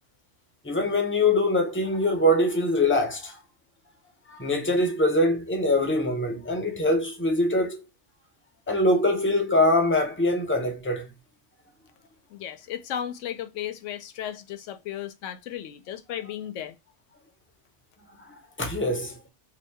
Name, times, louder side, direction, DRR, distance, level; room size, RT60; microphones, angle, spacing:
voice 1, 0.6-3.3 4.3-7.8 8.7-11.1 18.6-19.1, left 1 dB, 15° left, 0.6 m, -23 dB
voice 2, 12.3-16.8, left 10 dB, 90° left, 0.9 m, -35 dB
2.8 x 2.6 x 4.4 m
omnidirectional pair, 1.2 m